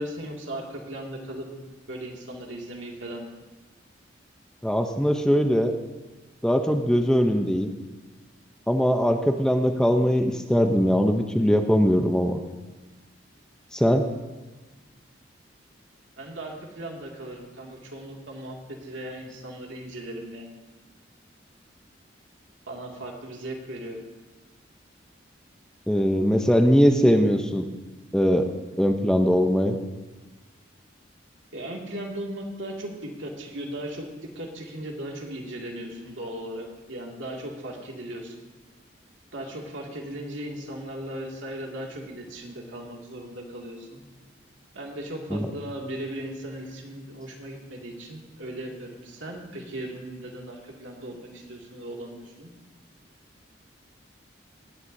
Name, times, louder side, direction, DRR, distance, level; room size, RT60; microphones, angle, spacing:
voice 1, 0.0-1.5 1.9-3.3 16.2-20.5 22.7-24.0 31.5-34.1 34.4-38.5 39.3-44.0 44.7-52.5, right 1 dB, 85° right, -1 dB, 2.2 m, -37 dB
voice 2, 4.6-5.7 6.4-7.7 8.7-12.4 13.7-14.1 25.9-27.6 28.1-28.5 28.8-29.8 45.3-45.5, equal, 5° left, 5 dB, 0.6 m, -21 dB
17.5 x 11.0 x 2.7 m, 1.2 s
head